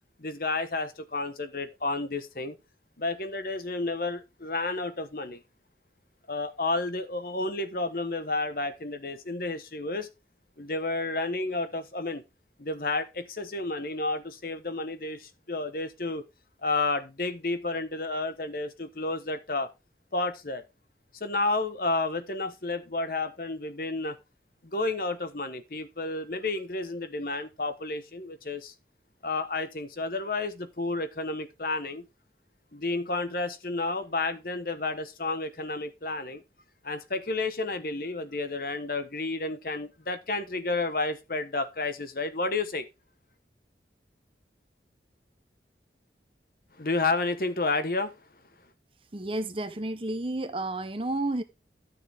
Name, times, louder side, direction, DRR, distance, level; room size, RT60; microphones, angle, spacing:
voice 1, 0.2-2.6 3.0-5.4 6.3-10.1 10.6-12.2 12.6-16.2 16.6-19.7 20.1-20.6 21.1-24.2 24.6-28.7 29.2-32.0 32.7-36.4 36.8-42.9 46.8-48.2, left 2 dB, 55° left, 1.2 m, -31 dB
voice 2, 49.1-51.4, right 2 dB, 30° right, 0.9 m, -31 dB
12.5 x 6.8 x 3.6 m
head